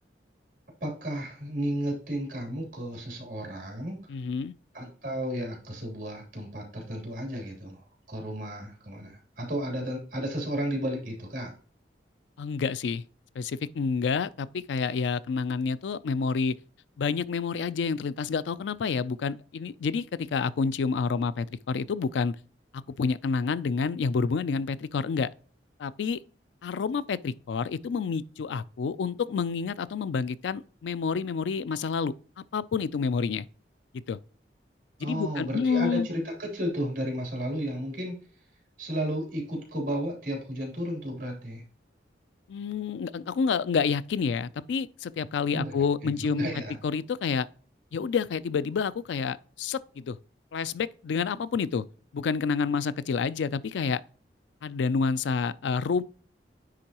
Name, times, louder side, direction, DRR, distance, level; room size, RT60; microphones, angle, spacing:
voice 1, 0.8-4.0 4.7-11.5 35.0-38.2 38.8-41.6 45.5-46.8, equal, 50° right, 3.1 m, -33 dB
voice 2, 4.1-4.5 12.4-13.0 13.4-16.6 17.0-22.4 22.7-25.3 25.8-26.2 26.6-32.1 32.5-33.5 33.9-34.2 35.0-36.1 42.5-46.5 46.8-47.5 47.9-50.2 50.5-51.8 52.1-54.0 54.6-56.0, left 5 dB, 85° left, 0.4 m, -28 dB
9.8 x 3.8 x 2.9 m
head